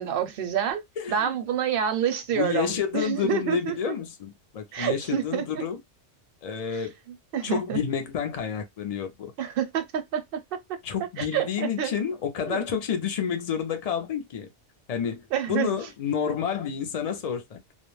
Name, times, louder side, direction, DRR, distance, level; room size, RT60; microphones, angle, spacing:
voice 1, 0.0-0.8 1.1-3.9 4.7-5.6 6.7-6.8 7.3-7.8 9.4-10.6 11.2-11.9 12.5-12.6 15.3-15.8 16.2-16.3, right 9 dB, 60° right, 0.7 m, -28 dB
voice 2, 1.0-1.3 2.4-5.8 6.4-6.9 7.4-9.3 10.8-14.5 14.9-17.6, left 7 dB, 65° left, 0.3 m, -29 dB
2.3 x 2.0 x 3.0 m
omnidirectional pair, 1.3 m